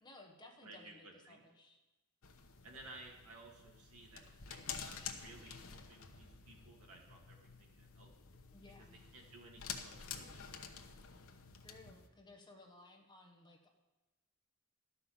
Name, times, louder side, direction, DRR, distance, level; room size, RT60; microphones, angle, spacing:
voice 1, 0.0-1.8 8.5-9.0 11.6-13.7, left 2 dB, 20° left, 3 dB, 1.0 m, -59 dB
voice 2, 0.6-1.4 2.6-8.1 8.8-8.9 9.1-10.5, right 2 dB, 70° right, 0 dB, 2.0 m, -57 dB
sound 1, 2.2-12.1, left 7 dB, 65° left, 0.9 m, -50 dB
12.5 x 5.6 x 7.1 m, 1.1 s
head